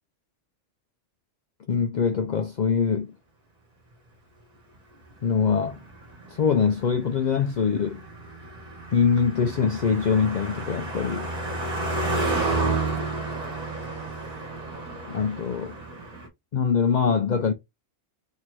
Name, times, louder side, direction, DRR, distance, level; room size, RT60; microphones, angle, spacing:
voice 1, 1.7-3.1 5.2-5.8 6.3-8.0 8.9-11.3 12.6-12.8 15.1-15.7 16.5-17.5, left 6 dB, 80° left, 0.4 m, -23 dB
Car passing by, 5.1-16.3, right 2 dB, 35° right, 1.1 m, -31 dB
3.0 x 2.7 x 4.4 m
omnidirectional pair, 1.3 m